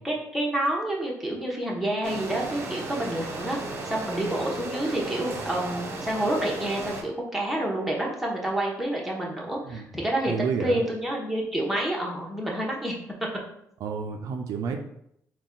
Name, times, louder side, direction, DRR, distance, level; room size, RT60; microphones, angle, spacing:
voice 1, 0.0-12.9, right 1 dB, ahead, -3 dB, 1.0 m, -28 dB
sound 1, 2.0-7.0, right 2 dB, 45° right, 0.8 m, -35 dB
voice 2, 10.3-10.8 13.8-14.8, right 5 dB, 70° right, 5 dB, 0.4 m, -30 dB
3.9 x 2.3 x 3.7 m, 0.74 s
cardioid pair, 90°, 6 cm